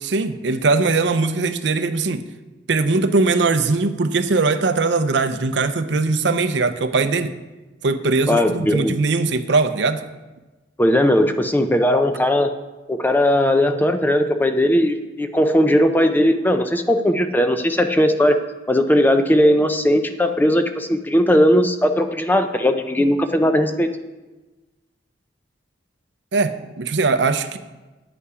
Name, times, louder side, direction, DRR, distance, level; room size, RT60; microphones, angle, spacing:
voice 1, 0.0-2.3 2.7-7.3 7.8-10.0 26.3-27.6, right 3 dB, 65° right, 10 dB, 0.6 m, -20 dB
voice 2, 8.3-8.9 10.8-12.5 12.9-18.4 18.7-23.9, left 1 dB, 10° left, 7 dB, 0.5 m, -18 dB
9.9 x 8.3 x 4.9 m, 1.2 s
head